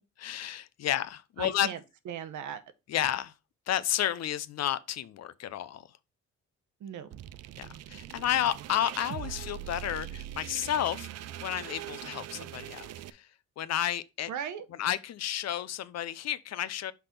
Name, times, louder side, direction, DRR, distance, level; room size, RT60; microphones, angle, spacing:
voice 1, 0.2-1.7 2.9-3.3 3.7-5.8 7.6-11.1 11.4-13.3 13.6-14.3 14.8-16.9, left 11 dB, 60° left, 0.6 m, -31 dB
voice 2, 1.4-2.6 6.8-7.2 14.3-14.7, right 8 dB, 75° right, 1.0 m, -38 dB
sound 1, 7.1-13.1, right 12 dB, 55° right, 0.5 m, -42 dB
5.9 x 3.4 x 5.8 m
cardioid pair, 90°, 30 cm